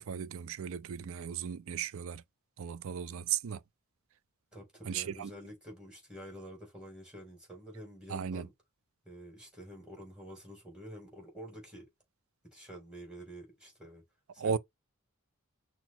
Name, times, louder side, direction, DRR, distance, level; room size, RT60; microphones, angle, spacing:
voice 1, 0.0-2.2 2.6-3.6 4.9-5.3 8.1-8.5 14.4-14.6, right 7 dB, 65° right, 0.4 m, -36 dB
voice 2, 4.5-8.5 9.0-11.9 12.5-14.0 14.3-14.6, equal, 5° right, 3.1 m, -48 dB
6.0 x 2.1 x 4.3 m
head